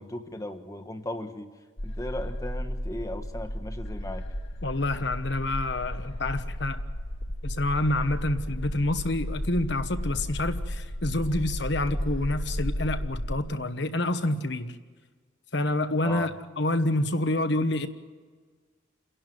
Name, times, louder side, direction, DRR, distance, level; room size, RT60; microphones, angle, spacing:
voice 1, 0.0-1.5 1.8-4.2 16.0-16.3, left 1 dB, 15° left, 6 dB, 1.3 m, -36 dB
sound 1, 1.8-13.3, equal, 90° left, 1.8 m, -33 dB
voice 2, 4.6-6.8 7.4-14.8 15.5-16.3 16.6-17.9, left 1 dB, 60° left, 9 dB, 1.2 m, -27 dB
29.0 x 11.5 x 9.3 m, 1.5 s
head